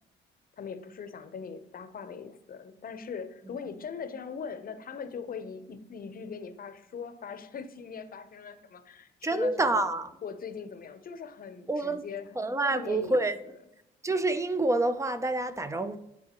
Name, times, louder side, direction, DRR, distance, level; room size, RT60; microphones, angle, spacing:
voice 1, 0.6-9.9 10.2-12.3 12.7-13.2, left 6 dB, 45° left, 0.8 m, -40 dB
voice 2, 9.2-10.1 11.7-12.0 12.3-13.4 14.0-16.0, right 2 dB, 15° right, 0.6 m, -27 dB
9.9 x 3.7 x 3.0 m
cardioid pair, 90°, 20 cm